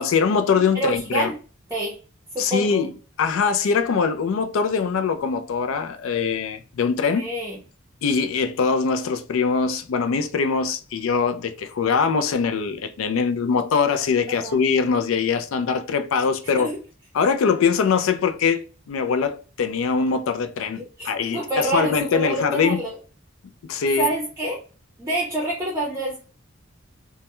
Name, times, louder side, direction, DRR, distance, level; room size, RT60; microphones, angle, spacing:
voice 1, 0.0-1.3 2.4-2.9 3.2-7.3 8.0-16.7 17.1-22.8 23.7-24.1, left 5 dB, 75° left, 0.4 m, -22 dB
voice 2, 0.7-1.3 1.7-2.0 2.3-2.8 7.1-7.6 14.3-14.6 16.6-16.7 21.0-22.9 24.0-24.6 25.0-26.2, right 1 dB, 15° right, 0.6 m, -27 dB
2.2 x 2.1 x 2.9 m
head